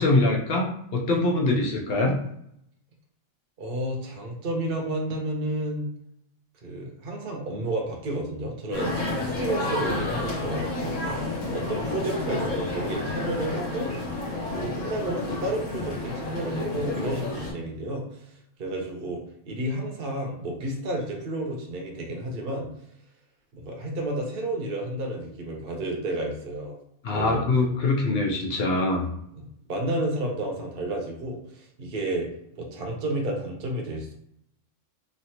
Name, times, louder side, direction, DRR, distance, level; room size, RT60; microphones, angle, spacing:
voice 1, 0.0-2.2 27.0-29.1, left 2 dB, 60° left, 0 dB, 0.7 m, -23 dB
voice 2, 3.6-5.9 6.6-13.9 14.5-18.3 18.6-22.7 23.5-26.8 27.1-27.5 29.4-34.1, right 1 dB, 50° right, 0 dB, 0.9 m, -31 dB
sound 1, 8.7-17.5, left 2 dB, 90° left, 1.5 m, -30 dB
3.2 x 2.6 x 2.8 m, 0.73 s
omnidirectional pair, 1.3 m